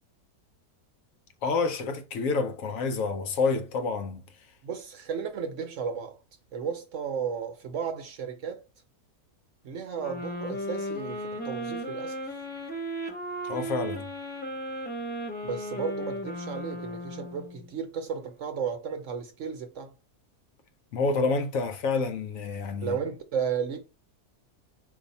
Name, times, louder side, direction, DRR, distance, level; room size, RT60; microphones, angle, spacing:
voice 1, 1.4-4.2 13.4-14.1 20.9-23.0, left 4 dB, 65° left, 1.1 m, -28 dB
voice 2, 4.6-6.2 6.5-8.6 9.6-12.2 15.4-19.9 22.8-23.8, right 6 dB, 65° right, 0.8 m, -34 dB
sound 1, 10.0-17.7, equal, 10° left, 0.7 m, -35 dB
4.7 x 2.7 x 4.0 m
omnidirectional pair, 1.6 m